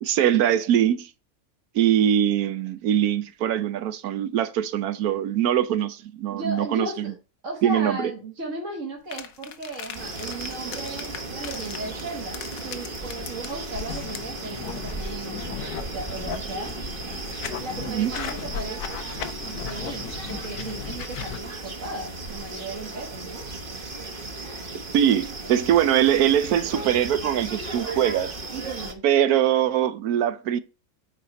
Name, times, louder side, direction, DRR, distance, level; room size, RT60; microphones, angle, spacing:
voice 1, 0.0-1.1 1.7-7.1 7.6-8.1 17.9-18.1 24.9-28.4 29.0-30.6, right 10 dB, 80° right, 1.2 m, -22 dB
voice 2, 6.3-7.1 7.4-16.7 17.6-19.0 19.4-23.4 28.5-29.0, right 2 dB, 55° right, 1.8 m, -36 dB
sound 1, 9.1-14.4, left 8 dB, 70° left, 1.2 m, -40 dB
sound 2, 9.9-28.9, right 2 dB, 40° right, 1.2 m, -35 dB
sound 3, 13.9-21.4, left 8 dB, 85° left, 1.4 m, -36 dB
8.7 x 4.2 x 5.0 m
omnidirectional pair, 1.6 m